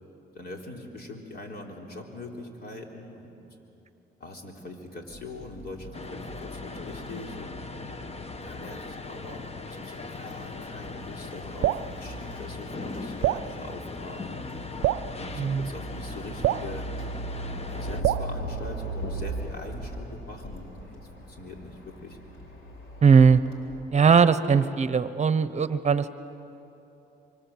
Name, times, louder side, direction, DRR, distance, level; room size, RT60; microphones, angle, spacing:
voice 1, 0.3-3.5 4.2-7.6 8.4-14.4 15.2-16.9 17.7-22.2, left 2 dB, 50° left, 1 dB, 3.9 m, -42 dB
sound 1, 5.1-23.8, right 1 dB, 75° left, 4.2 m, -40 dB
sound 2, 5.9-18.0, left 3 dB, 30° left, 1.2 m, -39 dB
Drip, 11.6-11.9 13.2-13.5 14.8-15.1 16.4-16.7 18.0-18.3, right 15 dB, 80° right, 0.5 m, -25 dB
voice 2, 15.4-15.7 23.0-23.4 23.9-26.1, right 6 dB, 35° right, 13 dB, 1.0 m, -19 dB
25.5 x 24.5 x 7.5 m, 2.9 s
cardioid pair, 90°, 20 cm